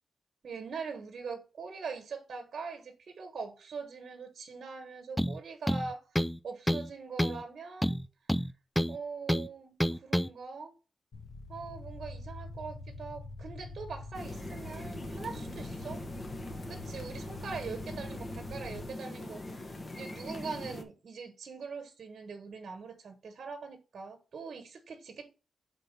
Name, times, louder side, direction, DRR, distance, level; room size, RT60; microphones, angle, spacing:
voice 1, 0.4-8.0 8.9-10.8 11.5-16.1 16.7-25.3, right 5 dB, 70° right, 1.2 m, -42 dB
sound 1, 5.2-5.4 5.7-6.4 6.7-6.9 7.2-7.4 7.8-9.0 9.3-9.5 9.8-10.3, equal, 5° left, 0.4 m, -28 dB
sound 2, 11.1-18.9, left 2 dB, 70° left, 1.6 m, -45 dB
sound 3, 14.1-20.8, left 1 dB, 35° left, 1.3 m, -42 dB
5.7 x 4.1 x 5.2 m
wide cardioid pair, 100°, 0 cm